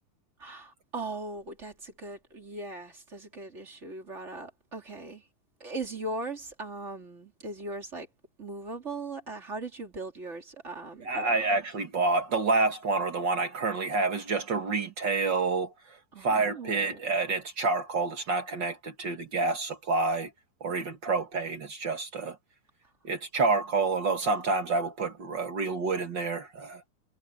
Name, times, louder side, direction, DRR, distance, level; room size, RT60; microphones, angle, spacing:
voice 1, 0.4-5.2 5.6-8.1 8.4-11.5 16.1-17.0, right 2 dB, 20° right, 3.4 m, -39 dB
voice 2, 11.1-20.3 20.6-22.4 23.0-26.8, right 3 dB, 45° right, 1.8 m, -28 dB
omnidirectional pair, 3.6 m